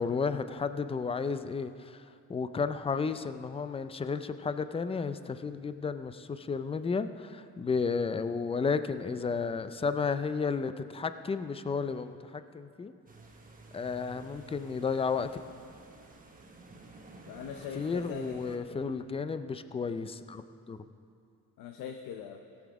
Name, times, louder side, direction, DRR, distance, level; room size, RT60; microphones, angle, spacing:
voice 1, 0.0-12.9 13.7-15.3 17.7-20.8, left 5 dB, 15° left, 11 dB, 0.4 m, -33 dB
sound 1, 13.1-18.6, right 3 dB, 25° right, 1.2 m, -52 dB
voice 2, 17.3-18.8 21.6-22.4, left 8 dB, 75° left, 5 dB, 0.7 m, -41 dB
16.5 x 7.2 x 4.8 m, 2.4 s
cardioid pair, 105°, 34 cm